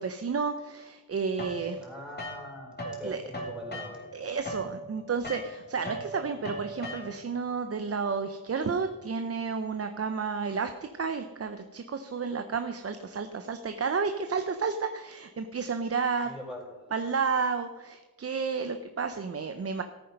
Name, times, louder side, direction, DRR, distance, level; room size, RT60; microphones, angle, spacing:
voice 1, 0.0-1.8 3.0-3.2 4.1-16.3 16.9-19.8, right 5 dB, 40° right, 8 dB, 0.7 m, -31 dB
sound 1, 1.4-3.0 3.3-7.4, equal, 25° left, 2.8 m, -39 dB
voice 2, 1.8-4.1 16.2-16.9, equal, ahead, -2 dB, 4.7 m, -43 dB
14.5 x 8.8 x 5.4 m, 1.2 s
wide cardioid pair, 120°, 36 cm